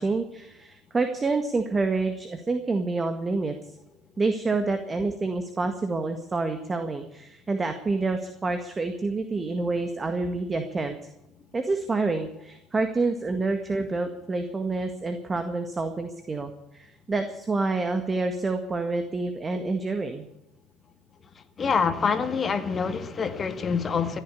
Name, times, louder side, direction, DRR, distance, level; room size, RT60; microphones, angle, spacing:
voice 1, 0.0-3.5 4.2-11.1 11.5-20.3, right 3 dB, 25° right, 1.8 m, -28 dB
voice 2, 21.4-24.2, left 5 dB, 35° left, 2.0 m, -26 dB
15.5 x 10.0 x 8.6 m
hypercardioid pair, 60°, 0 cm